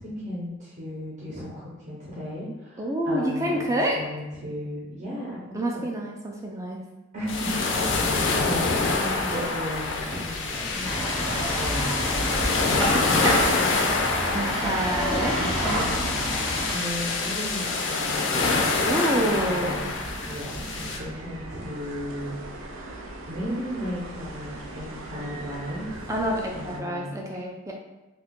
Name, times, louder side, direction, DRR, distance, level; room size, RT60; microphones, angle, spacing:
voice 1, 0.0-3.7 3.9-5.9 7.1-13.7 15.6-18.6 18.9-19.9 20.2-22.3 22.7-23.0 23.3-26.3 26.5-27.2, equal, 35° right, -7 dB, 0.7 m, -35 dB
voice 2, 2.8-4.0 5.5-6.8 14.3-15.4 18.8-19.9 26.1-27.7, right 1 dB, 15° right, -1 dB, 0.4 m, -27 dB
sound 1, 7.3-21.0, left 3 dB, 65° left, 0.4 m, -26 dB
sound 2, 10.8-16.7, equal, 5° left, 0.8 m, -27 dB
sound 3, 19.2-26.8, right 2 dB, 80° right, 0.5 m, -40 dB
2.6 x 2.3 x 3.6 m, 1.1 s
head